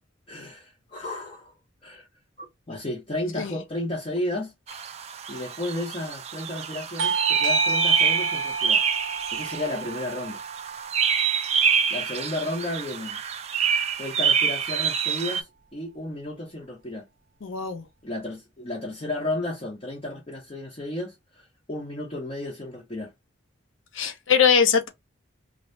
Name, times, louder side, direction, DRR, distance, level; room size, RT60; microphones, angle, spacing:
voice 1, 0.3-1.5 1.8-2.1 2.4-4.5 5.3-8.8 9.3-10.4 11.4-11.5 11.9-13.2 14.0-17.0 18.0-23.1, left 1 dB, 30° left, 0.7 m, -33 dB
sound 1, 4.7-15.4, right 7 dB, 35° right, 0.3 m, -26 dB
Bell / Doorbell, 7.0-12.2, right 3 dB, 90° right, 0.5 m, -30 dB
voice 2, 17.4-17.8 23.9-24.9, left 7 dB, 85° left, 0.6 m, -21 dB
2.6 x 2.0 x 3.2 m
head